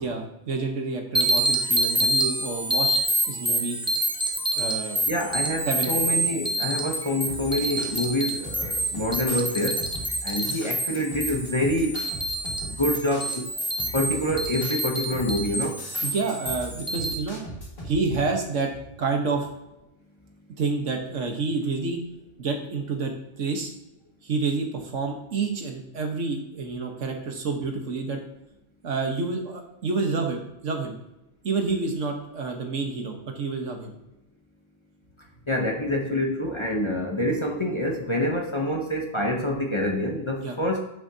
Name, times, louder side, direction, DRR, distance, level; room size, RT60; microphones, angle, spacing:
voice 1, 0.0-3.0 3.3-3.8 4.6-5.0 5.6-5.9 16.0-17.4 17.8-19.5 20.6-22.0 22.4-23.7 24.2-28.2 28.8-31.0 31.4-34.0 40.4-40.6, right 4 dB, 80° right, 3 dB, 1.6 m, -28 dB
sound 1, 1.1-17.1, right 1 dB, 5° right, 0.5 m, -27 dB
voice 2, 5.1-9.8 10.2-12.0 12.6-13.5 13.9-15.8 35.5-40.8, left 1 dB, 30° left, 1 dB, 0.7 m, -26 dB
sound 2, 7.3-17.9, equal, 45° left, 2.2 m, -39 dB
10.5 x 6.3 x 2.8 m, 0.91 s
omnidirectional pair, 1.3 m